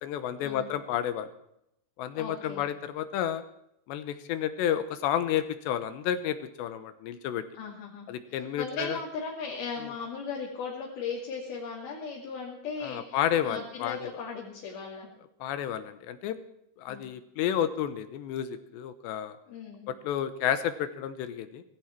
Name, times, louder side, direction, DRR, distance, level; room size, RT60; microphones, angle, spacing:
voice 1, 0.0-1.3 2.0-3.4 3.9-7.4 8.1-9.0 9.8-9.9 12.8-14.1 15.4-16.4 16.8-19.4 19.9-21.6, left 10 dB, 80° left, 11 dB, 3.1 m, -31 dB
voice 2, 2.1-2.6 7.5-15.1 16.9-17.0 19.5-19.9, left 5 dB, 60° left, -2 dB, 4.2 m, -37 dB
19.0 x 16.0 x 4.5 m, 0.78 s
omnidirectional pair, 5.1 m